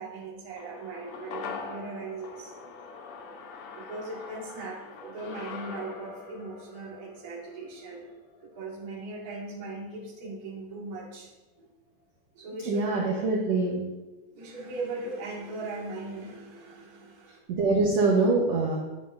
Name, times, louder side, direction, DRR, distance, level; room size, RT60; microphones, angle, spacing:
voice 1, 0.0-2.5 3.7-8.1 8.4-11.3 11.6-11.7 12.3-13.2 14.3-17.4, right 3 dB, 40° right, -4 dB, 1.5 m, -39 dB
sound 1, 0.6-9.1 9.4-9.5, left 4 dB, 85° left, 1.4 m, -43 dB
voice 2, 12.6-13.8 17.5-18.8, right 3 dB, 70° right, -2 dB, 1.7 m, -24 dB
9.1 x 8.9 x 2.6 m, 1.1 s
omnidirectional pair, 4.3 m